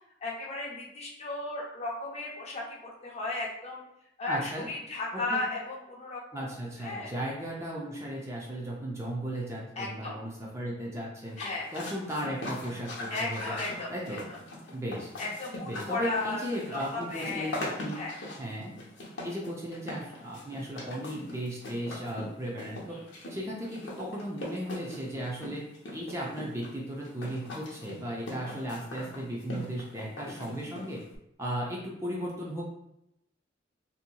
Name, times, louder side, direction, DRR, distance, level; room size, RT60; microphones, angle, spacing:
voice 1, 0.2-3.8 4.2-6.5 6.8-7.1 9.8-10.2 11.4-11.7 13.1-13.9 15.2-16.4 16.7-17.5 17.9-18.1 22.9-23.1 28.2-28.3, left 2 dB, 35° left, -3 dB, 0.6 m, -35 dB
voice 2, 4.3-4.7 5.3-5.4 6.3-11.4 11.7-13.6 13.9-14.2 14.7-15.1 15.6-18.0 18.4-18.7 19.2-23.0 23.3-25.6 25.9-31.0 31.4-32.6, equal, 15° right, -4 dB, 0.5 m, -36 dB
sound 1, 11.3-31.2, left 1 dB, 75° left, 0.7 m, -41 dB
2.9 x 2.6 x 2.2 m, 0.81 s
head